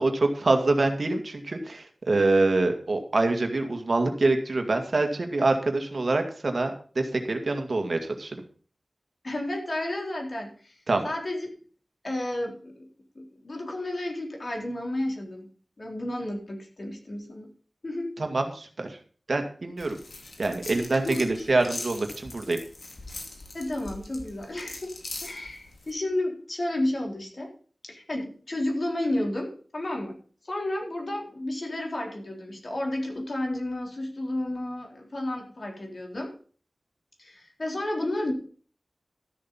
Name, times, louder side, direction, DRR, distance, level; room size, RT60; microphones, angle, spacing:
voice 1, 0.0-8.4 10.9-11.1 18.2-19.0 19.3-20.0 20.4-22.6, right 2 dB, 70° right, 5 dB, 2.0 m, -25 dB
voice 2, 9.2-10.8 11.0-11.5 12.0-12.9 13.2-15.5 15.8-17.5 17.8-18.2 20.9-21.2 23.5-24.9 25.2-27.5 27.8-30.2 30.5-36.3 37.2-38.3, left 1 dB, 60° left, 0 dB, 3.8 m, -32 dB
sound 1, 19.8-25.9, left 2 dB, 75° left, 2.7 m, -41 dB
13.5 x 6.8 x 5.4 m, 0.42 s
wide cardioid pair, 45°, 0 cm